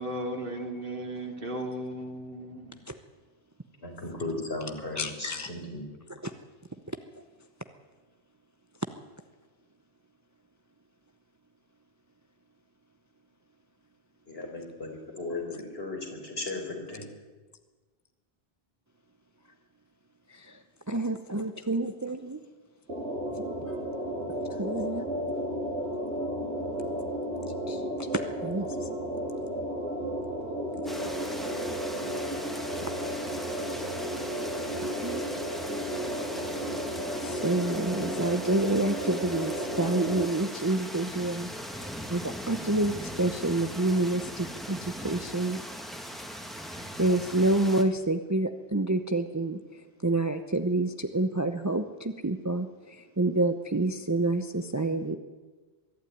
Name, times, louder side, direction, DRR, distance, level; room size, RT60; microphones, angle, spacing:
voice 1, 0.0-2.8, right 1 dB, 60° right, 2 dB, 2.8 m, -35 dB
voice 2, 3.8-5.9 14.3-17.1, left 2 dB, 70° left, 1 dB, 4.7 m, -36 dB
voice 3, 5.0-5.5 6.1-6.3 6.9-7.0 20.3-22.4 23.3-23.5 24.4-25.0 27.6-28.9 30.8-31.4 34.8-35.2 37.2-45.6 46.7-55.2, right 2 dB, 20° right, 7 dB, 0.8 m, -29 dB
sound 1, 22.9-40.3, equal, 80° right, 3.3 m, -33 dB
sound 2, 30.9-47.8, equal, ahead, 1.9 m, -40 dB
22.5 x 12.5 x 9.4 m, 1.3 s
omnidirectional pair, 1.1 m